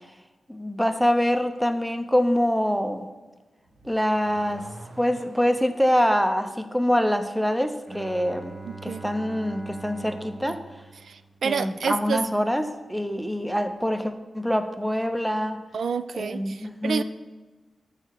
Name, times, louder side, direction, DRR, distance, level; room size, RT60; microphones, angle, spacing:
voice 1, 0.5-3.1 3.8-4.7 5.0-8.6 8.8-10.6 11.4-15.6 16.1-17.0, equal, ahead, 8 dB, 0.7 m, -25 dB
Car / Accelerating revving vroom, 3.6-5.8, equal, 50° right, 1.3 m, -46 dB
Bowed string instrument, 7.9-11.8, right 3 dB, 35° right, 0.9 m, -42 dB
voice 2, 8.7-9.0 11.0-12.2 15.7-17.0, right 6 dB, 80° right, 13 dB, 0.3 m, -29 dB
13.5 x 4.9 x 4.7 m, 1.2 s
wide cardioid pair, 115°, 0 cm